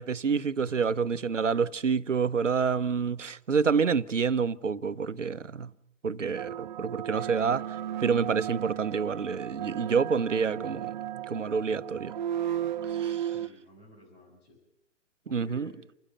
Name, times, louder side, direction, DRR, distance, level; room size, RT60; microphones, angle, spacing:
voice 1, 0.0-5.7 6.0-7.6 8.0-10.9 11.3-12.1 12.9-13.3 15.3-15.7, right 5 dB, 80° right, 0.9 m, -28 dB
voice 2, 0.6-0.9 13.3-14.6 15.3-15.8, left 2 dB, 80° left, 7.0 m, -51 dB
sound 1, 6.4-13.5, right 11 dB, 40° right, 0.7 m, -34 dB
29.0 x 15.0 x 7.1 m
figure-of-eight pair, 125°, 37 cm